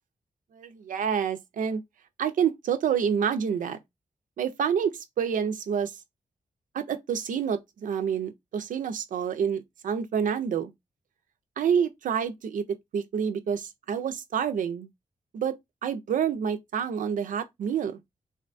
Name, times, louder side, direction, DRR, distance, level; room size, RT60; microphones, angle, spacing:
voice 1, 0.5-1.8 2.2-3.8 4.4-6.0 6.7-10.7 11.6-12.6 12.9-14.9 15.3-18.0, right 7 dB, 75° right, 0.4 m, -28 dB
2.6 x 2.2 x 2.5 m
wide cardioid pair, 170°, 14 cm